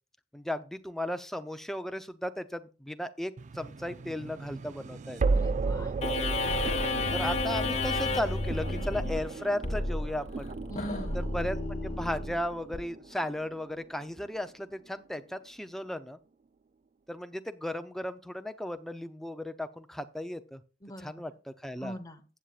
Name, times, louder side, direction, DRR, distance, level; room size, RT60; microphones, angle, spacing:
voice 1, 0.3-5.2 7.1-10.5 11.3-16.2 17.1-20.6 21.0-21.3 21.6-22.0, left 1 dB, ahead, 9 dB, 0.6 m, -35 dB
sound 1, 3.4-14.4, right 4 dB, 40° right, 0.3 m, -35 dB
voice 2, 5.3-5.9 10.7-11.2 20.8-21.2 21.8-22.2, equal, 20° left, 6 dB, 1.1 m, -42 dB
sound 2, 6.0-12.8, left 3 dB, 35° left, 1.3 m, -32 dB
15.0 x 8.4 x 2.4 m, 0.34 s
head